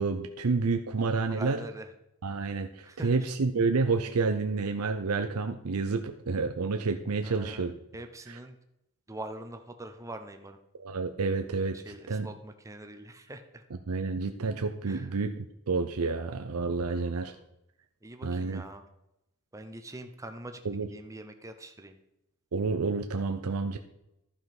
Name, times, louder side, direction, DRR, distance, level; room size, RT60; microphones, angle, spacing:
voice 1, 0.0-1.6 2.2-7.8 8.3-8.4 10.8-11.8 12.1-12.3 13.9-17.4 18.2-18.6 20.6-20.9 22.5-23.8, right 4 dB, 85° right, 6 dB, 0.6 m, -29 dB
voice 2, 1.2-1.9 2.8-3.1 7.2-7.7 7.9-8.6 9.1-10.6 11.7-13.6 14.9-15.1 16.9-17.4 18.0-18.8 19.5-20.6 20.9-22.0, right 1 dB, 15° right, 6 dB, 0.8 m, -43 dB
12.0 x 5.5 x 5.9 m, 0.85 s
head